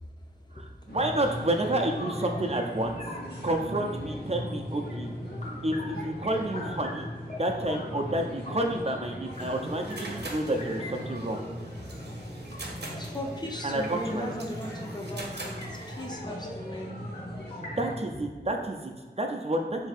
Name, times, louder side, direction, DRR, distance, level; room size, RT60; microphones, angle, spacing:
voice 1, 0.0-1.0 12.9-17.0, equal, 25° left, 1 dB, 0.6 m, -38 dB
voice 2, 0.5-3.0 3.4-5.1 5.6-7.1 7.4-11.4 13.6-14.5 17.6-19.9, right 1 dB, 40° right, 2 dB, 0.4 m, -30 dB
sound 1, 0.9-18.0, equal, 70° left, 1.1 m, -39 dB
sound 2, 2.0-3.9 4.3-5.0 5.4-8.8 9.2-17.9, left 2 dB, 45° left, 0.9 m, -44 dB
sound 3, 9.3-16.1, right 2 dB, 75° right, 0.7 m, -44 dB
3.5 x 2.6 x 4.0 m, 1.4 s
wide cardioid pair, 45°, 17 cm